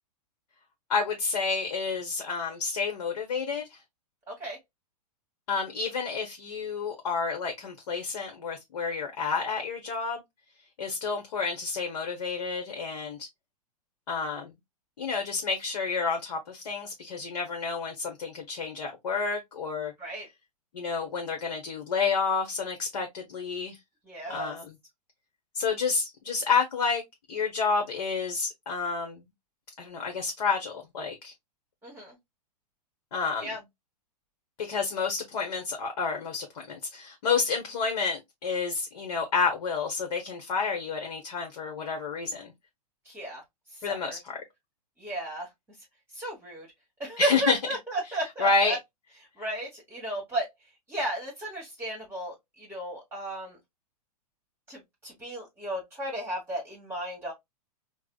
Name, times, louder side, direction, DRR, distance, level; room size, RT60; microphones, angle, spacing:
voice 1, 0.9-3.8 5.5-10.2 10.8-13.3 14.1-14.5 15.0-19.9 20.7-23.8 24.3-24.7 25.5-27.0 27.3-29.2 29.8-31.3 33.1-33.5 34.6-42.5 43.8-44.4 47.2-47.6 48.4-48.8, left 5 dB, 55° left, 1.0 m, -29 dB
voice 2, 4.3-4.6 20.0-20.3 24.0-24.6 31.8-32.2 33.4-33.6 43.0-43.4 43.7-44.2 45.0-45.5 46.1-46.7 47.0-48.8 49.4-50.5 50.9-53.6 54.7-57.3, right 1 dB, 10° right, 1.3 m, -34 dB
4.7 x 2.1 x 2.3 m
figure-of-eight pair, 110°, 21 cm